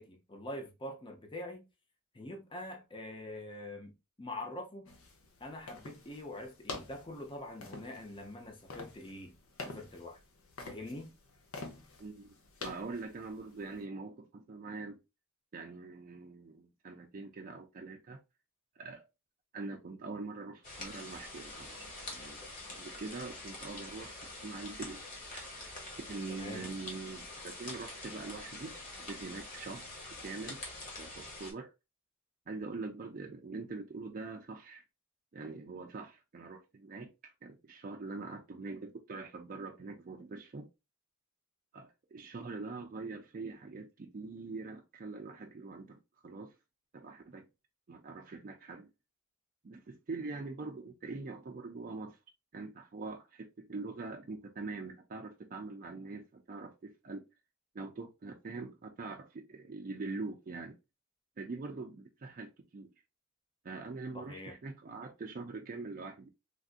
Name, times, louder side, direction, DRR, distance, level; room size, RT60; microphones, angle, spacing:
voice 1, 0.0-1.6 2.1-3.9 4.2-4.9 5.4-9.3 9.6-10.2 10.7-11.1 26.3-26.7 64.1-64.6, left 1 dB, 25° left, 0.6 m, -44 dB
sound 1, 4.9-13.8, left 3 dB, 65° left, 0.8 m, -48 dB
voice 2, 12.0-12.3 12.6-15.0 15.5-18.2 18.8-19.0 19.5-22.4 22.7-25.0 25.3-25.5 26.1-29.8 30.2-30.6 31.0-31.7 32.5-34.8 35.3-40.7 41.7-46.5 46.9-47.5 47.9-48.9 49.6-52.2 52.5-57.2 57.7-60.8 61.4-62.9 63.6-66.3, right 3 dB, 40° right, 0.4 m, -43 dB
sound 2, 20.6-31.5, left 2 dB, 40° left, 1.3 m, -45 dB
3.4 x 2.5 x 2.4 m
head